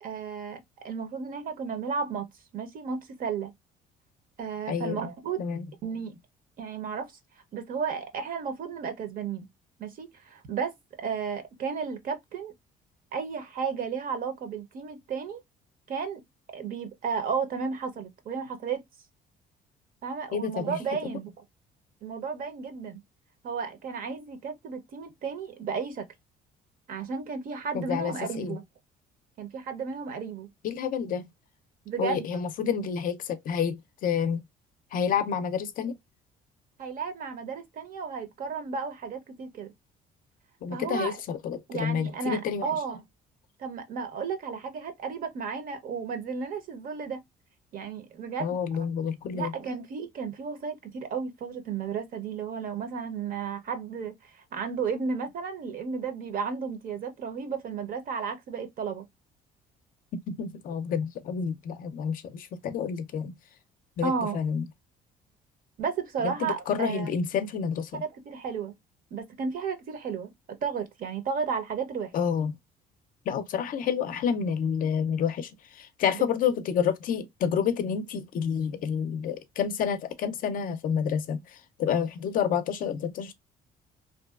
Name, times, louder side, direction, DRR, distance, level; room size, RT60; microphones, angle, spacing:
voice 1, 0.0-2.3 2.5-3.5 4.4-5.4 5.8-6.2 6.6-7.1 7.5-9.5 9.8-12.5 13.1-15.4 15.9-16.2 16.5-18.8 20.0-21.3 22.0-23.0 23.4-26.0 26.9-28.6 29.4-30.5 31.9-32.3 36.8-39.7 40.7-41.2 41.7-43.0 43.6-47.2 47.7-48.6 49.3-59.0 64.0-64.4 65.8-67.1 67.9-68.7 69.1-72.1 76.1-76.2, right 6 dB, 55° right, 0.7 m, -33 dB
voice 2, 4.7-5.0 5.4-5.7 20.3-20.8 27.7-28.6 30.6-31.3 32.0-34.4 34.9-36.0 40.6-42.6 48.4-49.5 60.3-63.3 64.0-64.6 66.2-68.0 72.1-72.5 73.3-83.3, left 7 dB, 55° left, 0.4 m, -29 dB
2.6 x 2.2 x 2.2 m
cardioid pair, 110°, 17 cm